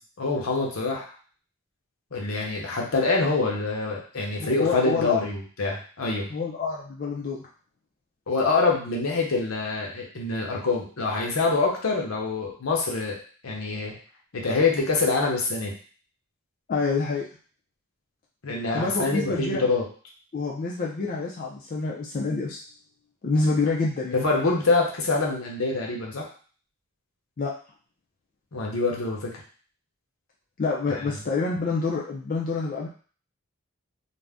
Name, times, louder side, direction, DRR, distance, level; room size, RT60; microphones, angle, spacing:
voice 1, 0.2-1.1 2.1-6.3 8.3-13.9 14.3-15.7 18.4-19.8 24.1-26.3 28.5-29.3 31.0-31.2, left 3 dB, 75° left, -1 dB, 0.8 m, -25 dB
voice 2, 4.4-5.2 6.3-7.4 16.7-17.3 18.7-19.6 20.3-22.6 23.2-24.2 27.4-27.5 30.6-32.9, left 4 dB, 40° left, -3 dB, 0.4 m, -27 dB
2.5 x 2.1 x 3.4 m, 0.41 s
head